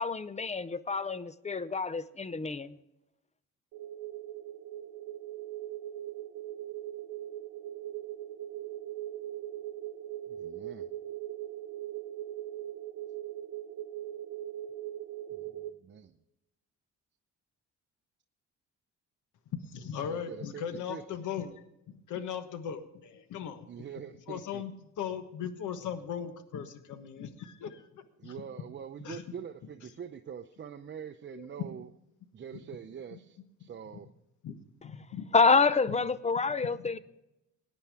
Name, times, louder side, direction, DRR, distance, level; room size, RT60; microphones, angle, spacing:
voice 1, 0.0-2.8 35.3-37.0, left 4 dB, 25° left, 0.6 m, -27 dB
sound 1, 3.7-15.7, right 12 dB, 90° right, 1.0 m, -40 dB
voice 2, 10.3-10.9 15.3-15.4 15.8-16.1 20.1-20.6 20.9-21.0 23.7-24.6 28.2-31.9 32.3-34.1, right 8 dB, 40° right, 0.7 m, -44 dB
voice 3, 19.6-21.6 22.1-23.7 24.3-28.3 29.0-29.2 31.3-31.5 33.1-33.2 34.4-34.6 34.8-35.3 35.9-36.0, left 8 dB, 80° left, 1.3 m, -38 dB
18.0 x 9.7 x 3.5 m
cardioid pair, 90°, 30 cm